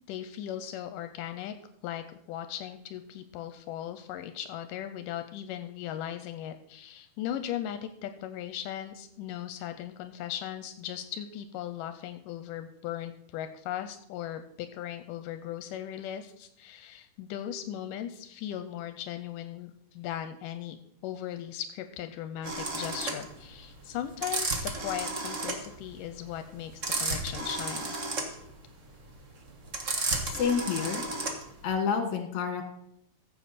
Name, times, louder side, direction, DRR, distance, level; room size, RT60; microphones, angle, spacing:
voice 1, 0.1-1.5 1.8-20.8 21.0-28.0, left 11 dB, 85° left, 9 dB, 2.2 m, -38 dB
sound 1, 22.4-31.6, right 2 dB, 90° right, 0.6 m, -33 dB
voice 2, 30.2-31.0 31.6-32.6, left 6 dB, 65° left, 5 dB, 2.7 m, -29 dB
15.0 x 7.6 x 4.2 m, 0.72 s
omnidirectional pair, 3.8 m